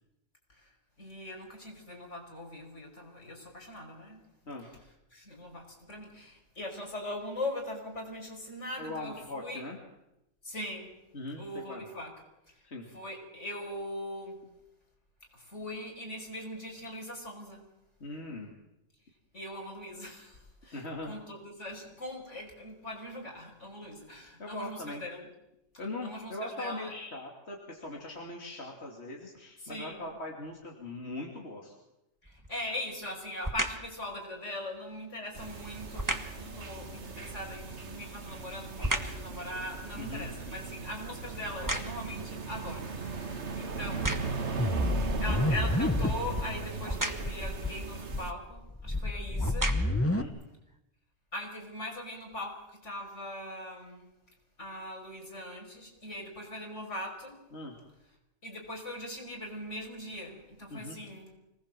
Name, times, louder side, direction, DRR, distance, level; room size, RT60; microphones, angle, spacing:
voice 1, 1.0-4.2 4.6-4.8 5.1-9.6 10.4-11.0 11.4-12.1 12.5-14.4 15.3-17.7 19.3-25.3 26.0-26.9 29.6-30.1 32.2-44.2 44.7-44.9 45.2-49.8 51.3-54.1 54.6-57.4 58.4-61.3, left 1 dB, 85° left, 2 dB, 6.0 m, -41 dB
voice 2, 8.8-9.8 11.1-11.4 11.7-11.8 12.6-12.9 18.0-18.5 20.7-21.1 24.4-25.0 25.8-31.7 36.5-36.6 40.0-40.3 50.0-50.3 57.5-57.7 60.7-61.0, left 2 dB, 65° left, 0 dB, 3.1 m, -40 dB
sound 1, 32.2-32.6 33.4-33.9 35.9-36.4 37.8-39.3 39.7-42.2 42.9-43.0 43.8-44.5 46.8-47.4 48.5-48.6 49.3-50.1 50.7-50.8, right 1 dB, 15° right, 1.6 m, -35 dB
sound 2, 35.3-48.3, right 4 dB, 70° right, 1.9 m, -38 dB
sound 3, 44.6-46.5 46.8-46.9 47.2-47.7 48.1-50.2, left 2 dB, 10° left, 1.0 m, -29 dB
25.5 x 20.0 x 7.6 m, 0.89 s
omnidirectional pair, 1.2 m